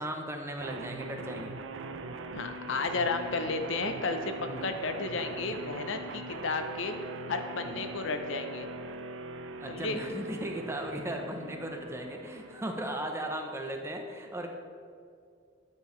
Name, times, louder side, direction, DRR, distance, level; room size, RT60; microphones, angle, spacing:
voice 1, 0.0-1.6 4.5-4.7 7.7-7.9 9.6-14.5, right 1 dB, 15° right, 3 dB, 0.6 m, -37 dB
sound 1, 0.6-13.6, right 2 dB, 75° right, 0.5 m, -42 dB
voice 2, 2.3-4.3 4.6-6.9 7.3-8.7 9.7-10.0, left 3 dB, 70° left, 7 dB, 0.6 m, -32 dB
9.6 x 6.9 x 3.1 m, 2.3 s
head